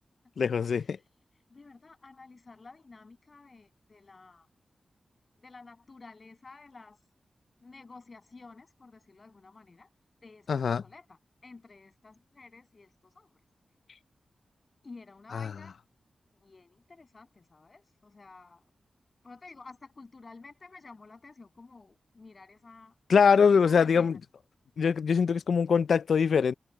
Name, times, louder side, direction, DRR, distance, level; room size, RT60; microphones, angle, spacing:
voice 1, 0.4-1.0 10.5-10.8 15.3-15.5 23.1-24.1 24.8-26.5, left 6 dB, 80° left, 0.4 m, -23 dB
voice 2, 1.5-4.5 5.4-7.0 7.6-9.9 10.2-13.3 14.8-15.8 16.4-18.6 19.2-23.0 23.5-24.2, left 3 dB, 40° left, 7.6 m, -51 dB
wide cardioid pair, 110°, 0 cm